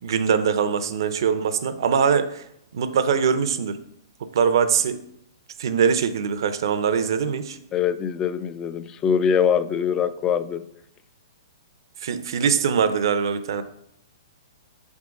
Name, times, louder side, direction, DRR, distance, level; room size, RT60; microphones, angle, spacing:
voice 1, 0.0-2.4 2.7-3.8 4.3-5.0 5.6-7.6 12.0-13.6, right 7 dB, 65° right, 0.6 m, -22 dB
voice 2, 7.7-10.6, left 7 dB, 20° left, 0.3 m, -23 dB
6.1 x 3.6 x 5.1 m
hypercardioid pair, 145°, 3 cm